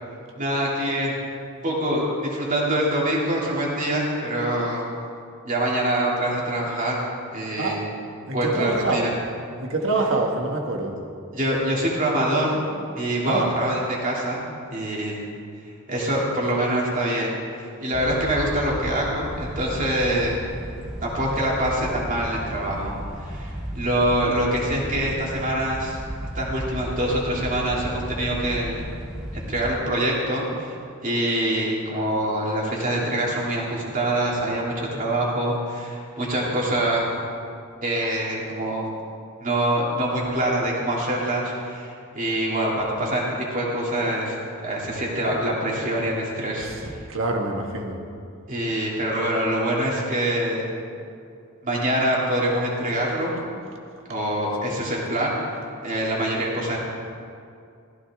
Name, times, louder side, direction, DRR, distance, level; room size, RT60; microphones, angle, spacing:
voice 1, 0.3-1.1 1.6-4.9 5.4-7.0 7.3-7.8 8.3-9.1 11.3-12.6 13.0-14.4 14.7-15.2 15.9-17.4 17.8-20.5 21.0-22.9 23.2-26.0 26.3-28.9 29.3-30.7 31.0-37.2 37.8-38.8 39.4-47.0 48.5-50.7 51.6-53.3 54.1-55.3 55.8-56.8, right 1 dB, 35° right, -4 dB, 3.1 m, -25 dB
voice 2, 8.3-9.1 9.6-10.9 13.2-13.5 47.1-48.0, right 2 dB, 60° right, 1 dB, 1.8 m, -25 dB
sound 1, 17.9-29.8, equal, 5° right, 0.9 m, -34 dB
15.5 x 15.5 x 3.8 m, 2.4 s
head